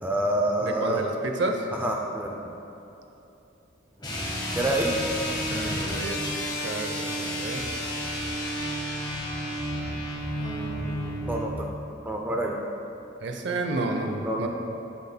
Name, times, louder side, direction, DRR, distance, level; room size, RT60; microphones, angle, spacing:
voice 1, 0.0-1.0 1.7-2.4 4.6-5.0 11.3-11.7 12.1-12.6 14.2-14.5, right 1 dB, 10° right, 0 dB, 0.3 m, -27 dB
voice 2, 0.6-1.7 5.5-7.6 10.4-11.6 13.2-14.5, right 2 dB, 60° right, 4 dB, 0.6 m, -32 dB
sound 1, 4.0-11.5, equal, 20° left, 1.1 m, -31 dB
10.0 x 7.0 x 2.2 m, 2.9 s
head